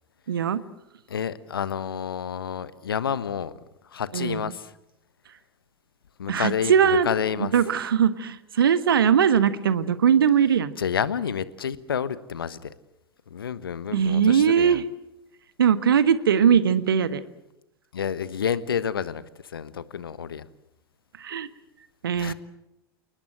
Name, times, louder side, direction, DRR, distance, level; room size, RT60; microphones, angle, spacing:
voice 1, 0.3-0.6 4.1-4.4 6.3-7.1 7.4-10.8 13.9-14.8 15.6-17.2 21.2-21.5 22.0-22.3, right 8 dB, 70° right, 13 dB, 1.4 m, -20 dB
voice 2, 1.1-3.5 3.8-4.7 6.2-7.5 10.8-12.7 13.3-14.8 17.9-20.5 22.1-22.3, left 8 dB, 70° left, 16 dB, 1.2 m, -29 dB
29.0 x 19.5 x 7.7 m, 0.90 s
figure-of-eight pair, 85°, 12 cm